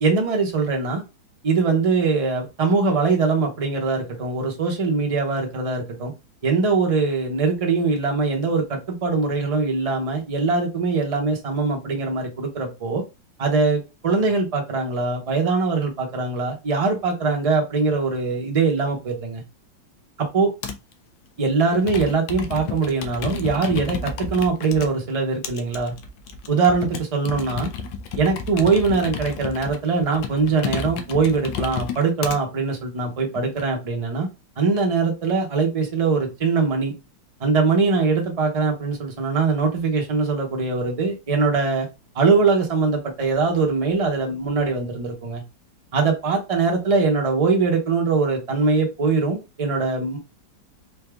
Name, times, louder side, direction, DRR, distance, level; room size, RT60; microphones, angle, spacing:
voice 1, 0.0-1.0 1.4-6.1 6.4-13.0 13.4-19.4 20.3-20.5 21.4-25.9 26.5-27.7 28.2-34.3 34.6-36.9 37.4-41.9 42.1-45.4 45.9-50.2, right 4 dB, 35° right, 1 dB, 0.5 m, -22 dB
Computer keyboard, 20.6-20.9 21.7-24.9 25.4-32.4 33.1-33.6, left 5 dB, 85° left, 1.4 m, -32 dB
3.9 x 2.4 x 3.3 m, 0.27 s
omnidirectional pair, 2.1 m